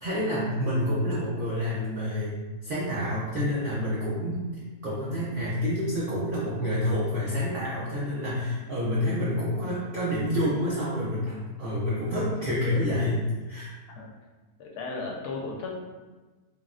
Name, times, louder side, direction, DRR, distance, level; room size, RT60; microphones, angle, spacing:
voice 1, 0.0-4.5 4.8-13.2 13.5-13.7, left 1 dB, 85° right, -8 dB, 0.4 m, -28 dB
voice 2, 14.6-15.7, left 3 dB, 90° left, -2 dB, 1.2 m, -35 dB
3.4 x 2.0 x 2.4 m, 1.2 s
omnidirectional pair, 1.7 m